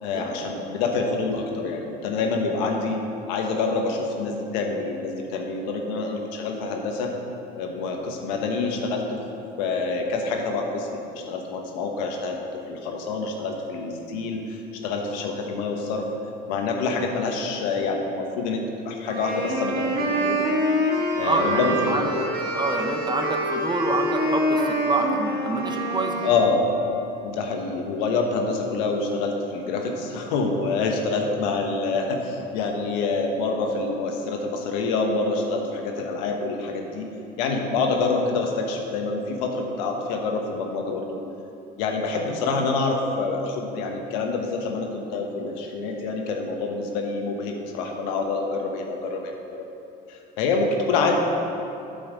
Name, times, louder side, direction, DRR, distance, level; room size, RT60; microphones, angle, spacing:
voice 1, 0.0-3.0 3.3-7.1 7.5-9.2 9.6-11.0 11.3-16.1 16.5-20.4 21.1-22.1 26.2-26.6 27.2-37.1 37.4-41.2 41.8-49.6 50.1-51.2, left 3 dB, 85° left, 2 dB, 1.1 m, -26 dB
sound 1, 19.0-26.5, equal, 45° right, 1.9 m, -26 dB
voice 2, 21.2-22.3 22.5-26.3, right 2 dB, 20° right, 3 dB, 1.1 m, -27 dB
8.7 x 5.5 x 6.4 m, 2.7 s
supercardioid pair, 80°, 21 cm